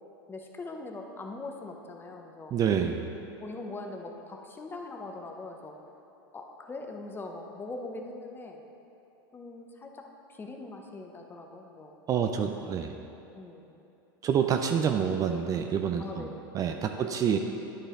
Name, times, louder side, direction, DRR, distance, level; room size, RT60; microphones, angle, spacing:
voice 1, 0.3-2.5 3.4-5.7 6.3-8.6 9.3-10.1 10.4-11.9 13.3-13.7 16.0-16.4 16.6-17.0, left 3 dB, 15° left, 3 dB, 0.8 m, -41 dB
voice 2, 2.5-3.0 12.1-13.0 14.2-16.3 16.5-17.4, right 7 dB, 30° right, 5 dB, 0.4 m, -27 dB
11.5 x 4.9 x 3.8 m, 2.9 s
hypercardioid pair, 105°, 12 cm